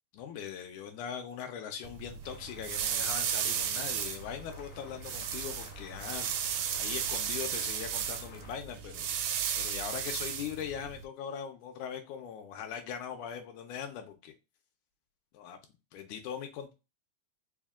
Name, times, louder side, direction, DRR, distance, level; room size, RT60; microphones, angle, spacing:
voice 1, 0.1-6.3 6.8-14.3 15.3-15.6 15.9-16.7, left 8 dB, 85° left, 2.0 m, -41 dB
sound 1, 1.8-11.0, right 8 dB, 80° right, 1.9 m, -35 dB
sound 2, 2.2-8.5, left 3 dB, 65° left, 0.7 m, -54 dB
4.7 x 2.1 x 3.5 m
omnidirectional pair, 3.4 m